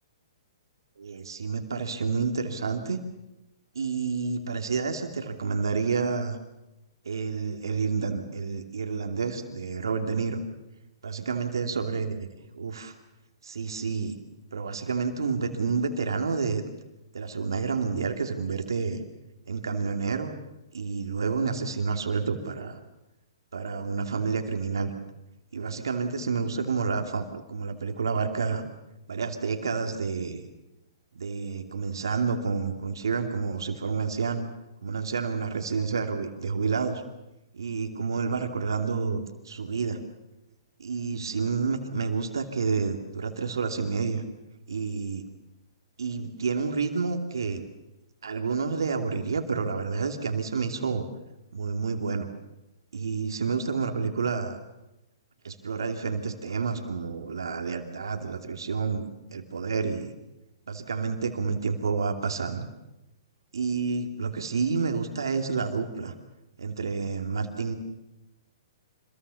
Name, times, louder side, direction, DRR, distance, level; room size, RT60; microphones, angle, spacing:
voice 1, 1.0-3.0 3.7-6.4 7.0-10.4 11.0-12.3 12.5-12.9 13.4-14.2 14.5-16.6 17.1-19.0 19.5-20.3 20.7-22.8 23.5-24.9 25.5-28.6 29.1-30.4 31.1-34.4 34.8-37.0 37.5-40.0 40.8-44.2 44.7-45.2 46.0-47.6 48.2-51.0 51.5-52.3 52.9-54.6 55.4-60.1 60.7-62.7 63.5-66.1 66.6-67.7, right 5 dB, 80° right, 5 dB, 2.7 m, -29 dB
26.0 x 22.0 x 7.0 m, 0.94 s
hypercardioid pair, 125°, 2 cm